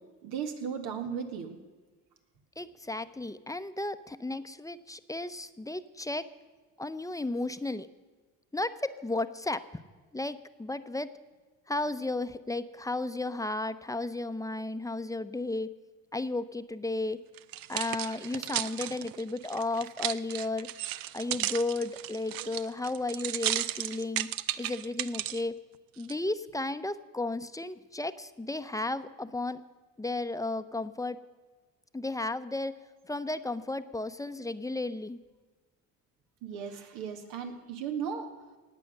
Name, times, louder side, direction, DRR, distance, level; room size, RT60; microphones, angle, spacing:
voice 1, 0.2-1.6 22.4-22.5 36.4-38.3, right 7 dB, 85° right, 5 dB, 1.9 m, -36 dB
voice 2, 2.6-6.3 6.8-7.9 8.5-9.6 10.1-11.1 11.7-15.7 16.1-17.2 17.7-20.7 21.1-24.3 24.6-25.6 26.0-29.6 30.0-31.2 31.9-32.7 33.1-35.2, left 2 dB, 10° left, 12 dB, 0.7 m, -34 dB
sound 1, 17.4-25.4 26.0-26.1, right 14 dB, 70° right, 0.6 m, -34 dB
18.5 x 8.5 x 6.7 m, 1.3 s
supercardioid pair, 80°, 36 cm